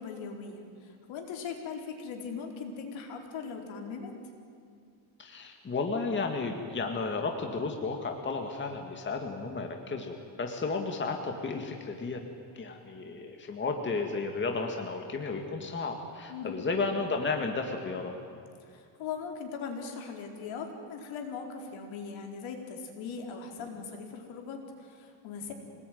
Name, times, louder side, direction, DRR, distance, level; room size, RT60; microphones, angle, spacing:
voice 1, 0.0-4.1 16.3-16.6 18.6-25.5, left 5 dB, 70° left, 2 dB, 4.4 m, -40 dB
voice 2, 5.2-12.2 12.5-18.2, left 4 dB, 25° left, 3 dB, 2.1 m, -33 dB
26.0 x 19.5 x 9.4 m, 2.3 s
cardioid pair, 145°, 48 cm